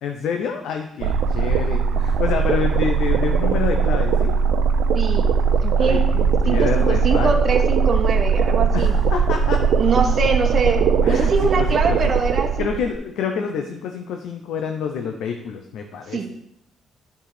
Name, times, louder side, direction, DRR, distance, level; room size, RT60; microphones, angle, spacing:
voice 1, 0.0-4.3 5.8-7.4 8.7-9.6 11.0-12.0 12.6-16.3, left 6 dB, 85° left, 5 dB, 0.8 m, -27 dB
sound 1, 1.0-12.9, right 5 dB, 75° right, 0.6 m, -19 dB
voice 2, 4.9-5.3 5.6-6.0 6.4-8.9 9.8-12.7 16.1-16.3, right 4 dB, 45° right, 3 dB, 1.2 m, -23 dB
10.5 x 4.8 x 4.9 m, 0.77 s
cardioid pair, 90°, 0 cm